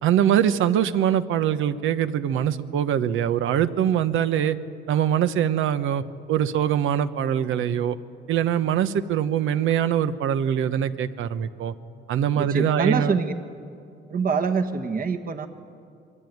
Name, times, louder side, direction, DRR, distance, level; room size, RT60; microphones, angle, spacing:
voice 1, 0.0-4.6 4.9-6.0 6.3-8.0 8.3-11.7 12.1-13.1, right 9 dB, 85° right, 12 dB, 1.1 m, -23 dB
voice 2, 12.3-13.3 14.1-15.5, right 5 dB, 45° right, 7 dB, 1.6 m, -25 dB
27.0 x 22.5 x 9.5 m, 2.5 s
cardioid pair, 90°, 20 cm